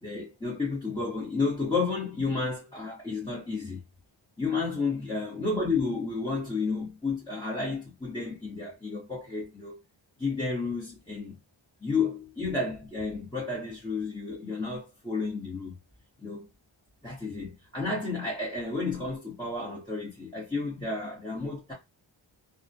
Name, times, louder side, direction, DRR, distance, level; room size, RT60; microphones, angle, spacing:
voice 1, 0.0-3.8 4.4-9.8 10.2-11.4 11.8-15.7 16.2-16.5 17.0-21.7, left 4 dB, 10° left, 0.9 m, -31 dB
2.3 x 2.1 x 2.6 m
wide cardioid pair, 130°, 48 cm